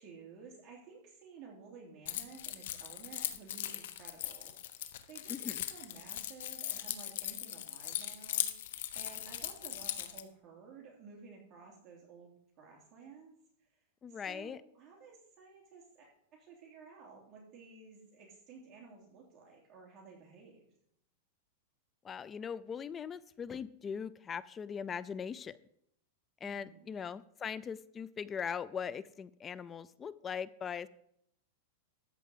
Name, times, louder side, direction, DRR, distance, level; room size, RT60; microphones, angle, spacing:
voice 1, 0.0-13.3 13.6-13.7 14.1-20.6 26.4-26.9, right 5 dB, 30° right, -2 dB, 3.0 m, -54 dB
Keys jangling, 2.1-10.2, left 12 dB, 70° left, 1.1 m, -39 dB
voice 2, 5.3-5.6 14.0-14.6 22.0-25.6 26.4-30.9, left 7 dB, 20° left, 18 dB, 0.4 m, -40 dB
13.5 x 4.7 x 7.7 m, 0.72 s
supercardioid pair, 150°, 0 cm